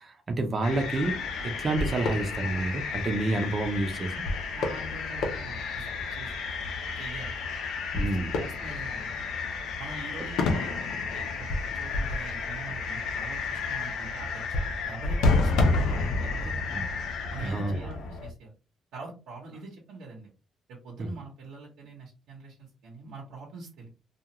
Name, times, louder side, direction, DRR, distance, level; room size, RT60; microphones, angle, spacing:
voice 1, 0.0-4.1 7.9-8.3 16.7-16.8 17.4-17.8 21.0-21.1, right 2 dB, 40° right, 0.6 m, -29 dB
sound 1, 0.6-18.3, left 3 dB, 85° left, 0.6 m, -30 dB
voice 2, 4.5-6.3 7.0-7.4 8.0-8.1 8.4-9.3 9.8-10.7 11.1-15.6 15.9-16.6 17.3-18.5 18.9-20.3 20.7-23.9, right 3 dB, 90° right, 0.9 m, -44 dB
2.4 x 2.4 x 2.9 m
cardioid pair, 90°, 0 cm